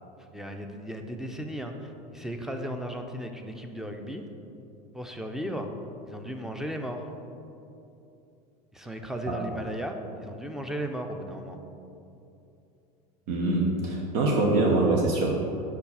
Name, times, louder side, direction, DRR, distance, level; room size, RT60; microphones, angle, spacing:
voice 1, 0.3-4.2 4.9-5.7 6.1-7.1 8.7-11.6, equal, ahead, 4 dB, 0.5 m, -35 dB
voice 2, 13.3-15.3, right 2 dB, 70° right, -1 dB, 0.9 m, -24 dB
5.0 x 4.5 x 5.4 m, 2.8 s
supercardioid pair, 105°, 20 cm